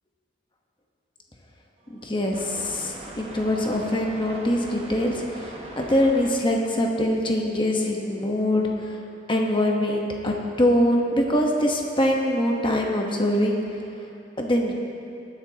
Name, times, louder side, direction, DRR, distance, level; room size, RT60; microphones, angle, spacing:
voice 1, 1.9-9.0 9.3-13.6 14.4-14.7, left 1 dB, 25° left, 0 dB, 1.1 m, -23 dB
sound 1, 1.9-6.3, right 2 dB, 30° right, 0.9 m, -40 dB
18.0 x 10.5 x 2.9 m, 2.8 s
head